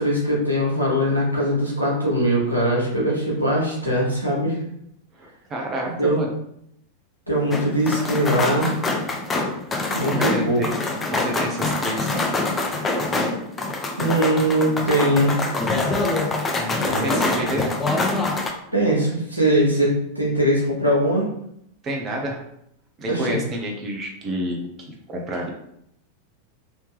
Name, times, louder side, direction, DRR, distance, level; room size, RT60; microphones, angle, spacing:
voice 1, 0.0-4.6 6.0-6.2 7.3-8.7 9.9-10.6 14.0-15.4 16.8-17.6 18.7-21.3 23.1-23.4, right 1 dB, 85° right, -5 dB, 1.2 m, -21 dB
voice 2, 5.1-6.3 10.1-12.4 16.5-17.7 21.8-22.4 23.0-25.5, equal, 25° right, 0 dB, 0.7 m, -29 dB
sound 1, 7.5-18.5, left 2 dB, 20° left, 0.5 m, -25 dB
3.3 x 2.8 x 3.2 m, 0.75 s
figure-of-eight pair, 90°, 0 cm